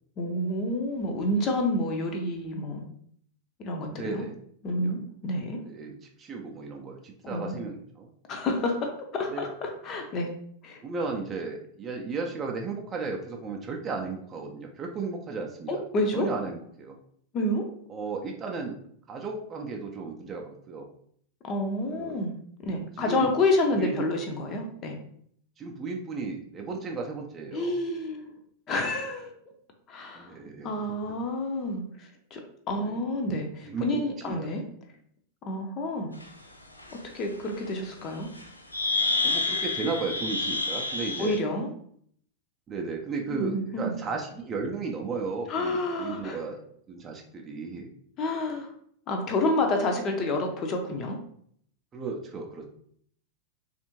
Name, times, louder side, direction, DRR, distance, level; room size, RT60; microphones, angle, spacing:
voice 1, 0.2-2.8 3.6-4.2 4.6-5.6 7.2-7.6 8.3-10.3 10.6-10.8 15.7-16.3 17.3-17.6 21.4-22.3 22.6-25.0 27.5-28.3 28.7-29.3 29.9-30.3 30.6-32.4 32.7-34.6 35.4-36.1 36.9-38.3 41.2-41.7 43.3-43.9 45.5-46.4 48.2-48.7 49.1-51.2, left 1 dB, 30° left, 3 dB, 0.6 m, -29 dB
voice 2, 3.9-4.3 4.7-4.9 5.7-8.1 9.3-9.5 10.8-15.8 16.1-17.0 17.9-18.8 19.1-20.9 21.9-22.2 23.0-23.3 23.7-24.0 25.6-27.8 30.1-30.7 32.8-33.0 33.7-34.5 39.2-41.4 42.7-46.6 46.9-47.9 51.9-52.7, right 4 dB, 25° right, 1 dB, 0.5 m, -34 dB
sound 1, 36.2-36.3 36.8-36.9 38.4-38.5 38.7-41.4, left 3 dB, 85° left, 0.4 m, -28 dB
3.4 x 2.5 x 2.9 m, 0.65 s
figure-of-eight pair, 90°, 0 cm